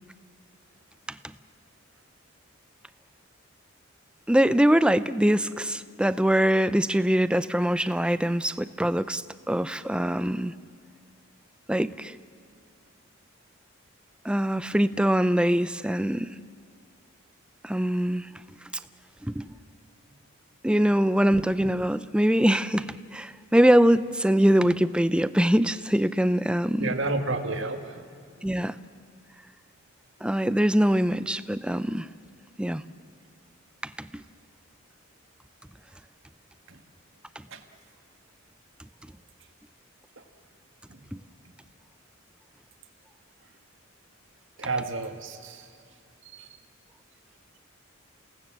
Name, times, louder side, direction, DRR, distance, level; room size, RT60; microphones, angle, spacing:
voice 1, 4.3-10.5 11.7-12.2 14.2-16.3 17.6-18.3 19.2-19.5 20.6-26.9 28.4-28.8 30.2-32.1 32.6-32.8 33.8-34.2, equal, 5° right, 14 dB, 0.5 m, -23 dB
voice 2, 26.8-28.0 37.5-37.6 40.9-41.0 44.6-45.6 46.3-46.5, right 3 dB, 65° right, 5 dB, 1.8 m, -30 dB
29.0 x 18.0 x 7.4 m, 2.2 s
head